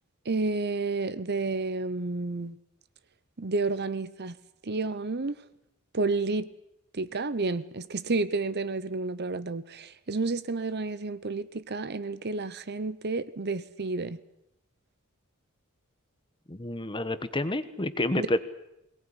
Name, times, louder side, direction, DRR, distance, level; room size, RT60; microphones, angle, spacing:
voice 1, 0.2-2.6 3.4-4.3 4.6-5.4 5.9-6.5 6.9-14.2 18.2-18.3, right 3 dB, 50° right, 15 dB, 0.9 m, -30 dB
voice 2, 16.5-18.4, left 1 dB, 25° left, 11 dB, 1.3 m, -29 dB
22.0 x 19.0 x 9.9 m, 0.84 s
head